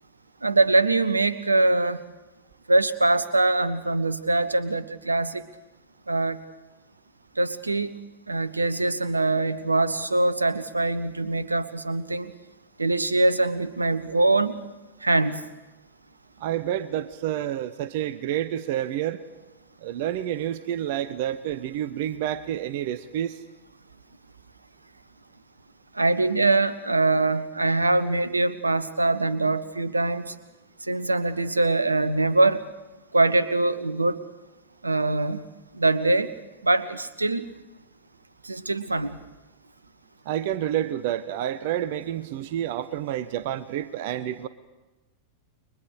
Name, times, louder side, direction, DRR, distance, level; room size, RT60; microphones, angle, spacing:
voice 1, 0.4-2.0 2.7-5.5 6.1-6.4 7.4-7.9 8.3-12.3 12.8-14.6 15.0-15.4 25.9-30.3 30.9-32.6 33.1-34.2 34.8-35.4 35.7-36.3 36.6-37.5 38.4-39.2, right 2 dB, 80° right, 15 dB, 1.1 m, -23 dB
voice 2, 16.4-19.2 19.8-23.4 40.2-44.5, right 11 dB, 50° right, 14 dB, 1.0 m, -29 dB
29.5 x 23.0 x 5.0 m, 1.1 s
figure-of-eight pair, 90°, 0 cm